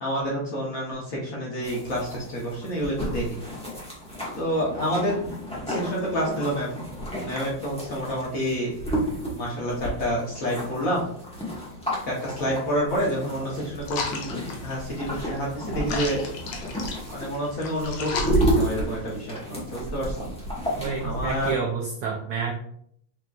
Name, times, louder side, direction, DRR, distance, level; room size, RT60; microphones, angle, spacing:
voice 1, 0.0-3.4 4.4-5.3 5.7-6.8 7.2-8.7 9.3-11.0 12.1-16.2 17.1-20.3 21.0-21.6, equal, 50° left, -4 dB, 1.1 m, -28 dB
sound 1, 1.6-21.5, right 1 dB, 5° left, 0.4 m, -32 dB
sound 2, 13.8-19.2, left 5 dB, 90° left, 1.6 m, -35 dB
voice 2, 20.8-22.5, right 6 dB, 80° right, 0 dB, 0.9 m, -29 dB
6.0 x 2.9 x 2.3 m, 0.66 s
omnidirectional pair, 2.3 m